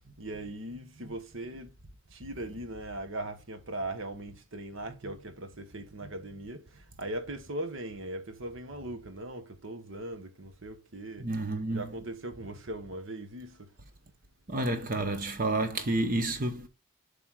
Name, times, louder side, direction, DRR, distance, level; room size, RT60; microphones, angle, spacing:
voice 1, 0.2-1.7 2.1-11.3 11.7-13.7, right 1 dB, 65° right, 1.2 m, -39 dB
voice 2, 11.2-11.9 14.5-16.7, right 2 dB, 40° right, 0.9 m, -30 dB
7.3 x 3.5 x 4.5 m
head